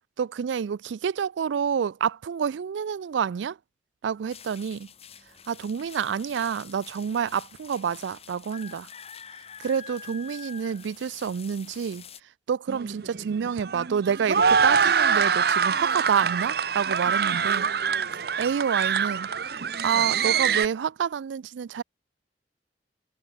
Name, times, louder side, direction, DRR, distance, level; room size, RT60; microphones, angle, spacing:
voice 1, 0.2-3.6 4.0-4.9 5.5-8.9 9.6-12.0 12.5-17.7 18.4-19.3 19.8-21.8, right 7 dB, 85° right, 0.4 m, -28 dB
sound 1, 4.3-12.2, left 7 dB, 35° left, 4.2 m, -46 dB
sound 2, 12.7-20.6, right 6 dB, 55° right, 0.8 m, -24 dB
head